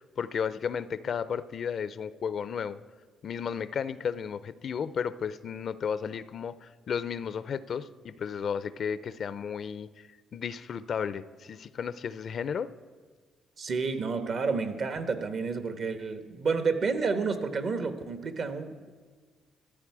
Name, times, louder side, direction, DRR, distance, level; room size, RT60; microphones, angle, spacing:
voice 1, 0.0-2.8 3.2-12.7, left 7 dB, 55° left, 15 dB, 0.4 m, -33 dB
voice 2, 13.6-18.9, right 4 dB, 55° right, 8 dB, 1.1 m, -30 dB
13.5 x 12.0 x 4.8 m, 1.5 s
cardioid pair, 90°, 0 cm